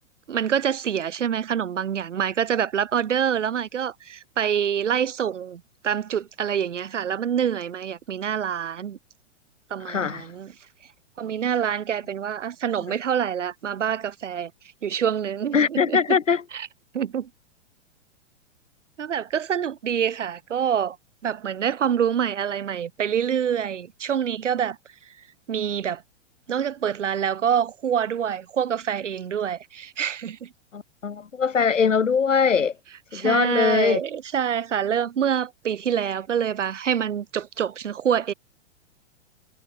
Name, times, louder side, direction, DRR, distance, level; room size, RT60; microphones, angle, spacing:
voice 1, 0.3-9.0 9.7-10.5 11.2-14.5 14.8-16.2 16.5-16.7 16.9-17.3 19.0-21.0 21.2-24.8 25.5-26.0 26.5-30.5 33.1-38.3, right 8 dB, 75° right, 6.3 m, -26 dB
voice 2, 9.8-10.3 15.5-16.4 30.7-32.7 33.1-34.0, left 6 dB, 85° left, 4.8 m, -21 dB
hypercardioid pair, 125°, 37 cm